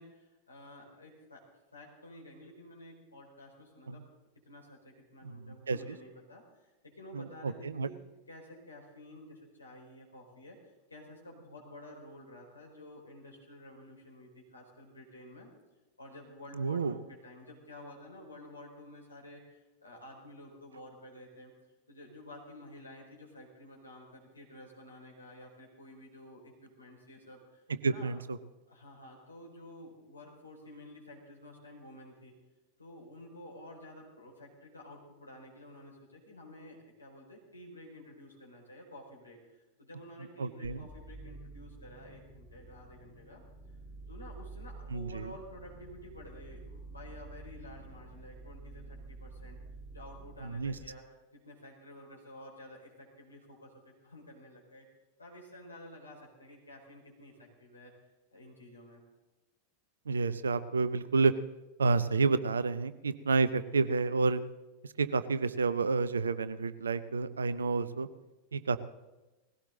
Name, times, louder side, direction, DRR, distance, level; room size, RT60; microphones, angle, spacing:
voice 1, 0.0-1.4 1.7-4.0 4.5-10.6 10.9-15.5 16.0-21.5 21.9-28.1 28.7-32.3 32.8-43.4 44.1-49.6 49.9-54.9 55.2-57.9 58.3-59.0, left 1 dB, 80° left, -1 dB, 4.6 m, -51 dB
voice 2, 5.2-5.8 7.1-7.9 16.6-16.9 27.8-28.4 40.4-40.8 44.9-45.2 50.5-50.7 60.1-61.3 61.8-64.4 65.0-68.1 68.5-68.8, right 4 dB, 70° right, 14 dB, 0.7 m, -29 dB
sound 1, 40.6-50.9, right 2 dB, 5° right, 1.7 m, -49 dB
19.0 x 16.0 x 3.9 m, 1.1 s
figure-of-eight pair, 90°, 0 cm